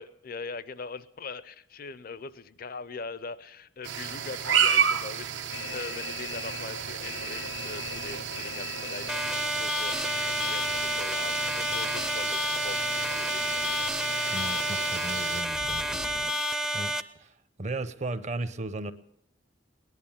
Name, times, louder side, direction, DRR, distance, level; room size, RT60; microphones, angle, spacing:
voice 1, 0.0-13.8, left 4 dB, 50° left, 17 dB, 0.6 m, -41 dB
sound 1, 3.8-15.4, right 8 dB, 75° right, 0.8 m, -32 dB
sound 2, 5.5-16.3, left 5 dB, 85° left, 0.8 m, -41 dB
sound 3, 9.1-17.0, equal, 5° right, 0.5 m, -30 dB
voice 2, 14.3-16.4 16.7-16.9 17.2-17.3 17.6-18.9, right 2 dB, 40° right, 13 dB, 0.8 m, -36 dB
18.5 x 11.0 x 7.2 m, 0.78 s
head